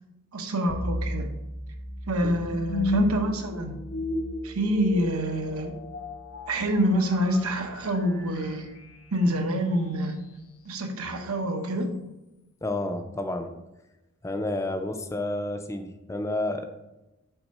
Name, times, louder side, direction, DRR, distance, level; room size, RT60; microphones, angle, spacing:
voice 1, 0.3-1.3 2.1-3.8 4.4-5.7 6.5-8.7 9.1-10.3 10.6-12.0, equal, 75° right, 5 dB, 0.9 m, -27 dB
sound 1, 0.7-9.8, left 2 dB, 80° left, 1.2 m, -34 dB
voice 2, 12.6-13.6 14.2-16.7, left 2 dB, 15° left, 7 dB, 0.5 m, -30 dB
5.9 x 4.0 x 5.4 m, 0.98 s
head